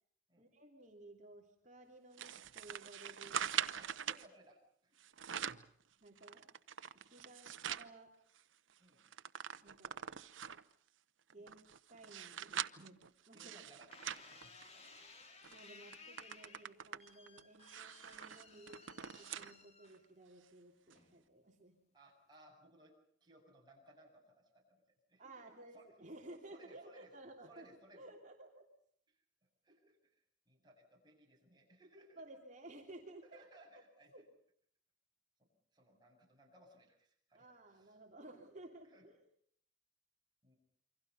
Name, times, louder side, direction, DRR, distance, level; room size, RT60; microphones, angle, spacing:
voice 1, 0.4-3.5 6.0-6.5 6.9-8.1 9.6-10.0 11.3-11.6 11.9-13.6 15.5-21.7 25.2-27.7 27.9-28.6 32.2-33.4 33.7-33.8 34.1-34.2 37.3-39.2, right 2 dB, 40° right, 1 dB, 3.1 m, -56 dB
sound 1, 2.2-4.3 5.0-5.7 6.2-7.9 8.4-8.5 8.7-10.7 11.3-15.0 15.4-15.6 15.9-19.5 19.9-20.0 20.9-21.0, right 9 dB, 85° right, 0.9 m, -43 dB
voice 2, 3.8-5.0 7.1-7.2 8.8-9.1 11.4-11.5 13.3-14.9 21.9-24.8 25.1-25.9 26.5-27.1 27.4-28.0 29.1-29.2 29.6-32.4 33.2-34.2 35.4-38.0 38.8-39.1 40.4-40.6, right 1 dB, 20° right, -1 dB, 8.0 m, -64 dB
sound 2, 13.9-20.3 20.9-21.4, left 4 dB, 35° left, 2.8 m, -59 dB
28.5 x 25.0 x 5.6 m, 0.63 s
head